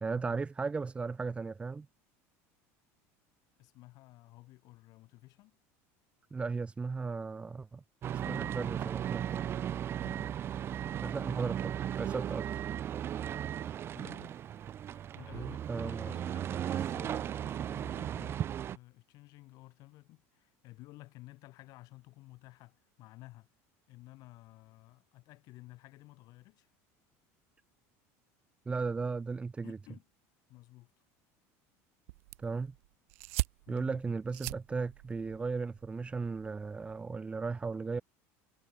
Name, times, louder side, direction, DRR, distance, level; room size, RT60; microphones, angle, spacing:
voice 1, 0.0-1.9 6.3-7.8 8.2-9.4 11.0-12.6 15.7-16.1 28.7-29.8 32.4-32.7 33.7-38.0, right 4 dB, 15° right, 1.1 m, -36 dB
voice 2, 3.6-5.6 10.0-10.4 13.9-14.4 14.9-23.5 23.9-26.7 29.6-30.1 30.5-30.9 33.7-34.0, left 19 dB, 55° left, 6.0 m, -54 dB
sound 1, 8.0-18.8, right 10 dB, 35° right, 0.7 m, -36 dB
sound 2, 32.1-37.1, right 22 dB, 85° right, 2.6 m, -42 dB
supercardioid pair, 135°, 7 cm